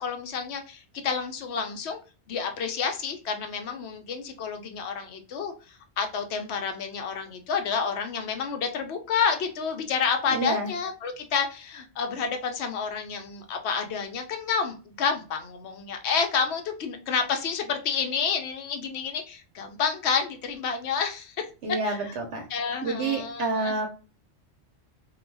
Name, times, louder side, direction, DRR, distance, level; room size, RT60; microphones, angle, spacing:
voice 1, 0.0-2.0 2.3-21.4 21.8-22.0 22.5-23.8, left 6 dB, 75° left, 5 dB, 0.9 m, -29 dB
voice 2, 10.3-10.7 21.6-22.4 22.8-23.9, right 3 dB, 85° right, 3 dB, 0.9 m, -28 dB
2.3 x 2.3 x 3.2 m, 0.34 s
omnidirectional pair, 1.1 m